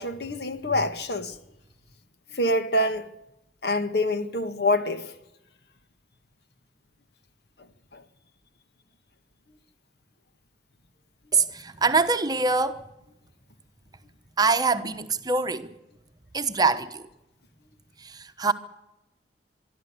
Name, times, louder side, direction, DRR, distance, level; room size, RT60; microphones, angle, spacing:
voice 1, 0.0-1.4 2.3-3.0 3.6-5.1 7.9-8.0, left 1 dB, 65° left, 1.8 m, -26 dB
voice 2, 11.3-12.9 14.4-15.7 16.3-17.1 18.0-18.5, right 4 dB, 20° right, 1.1 m, -24 dB
24.5 x 12.5 x 9.6 m
head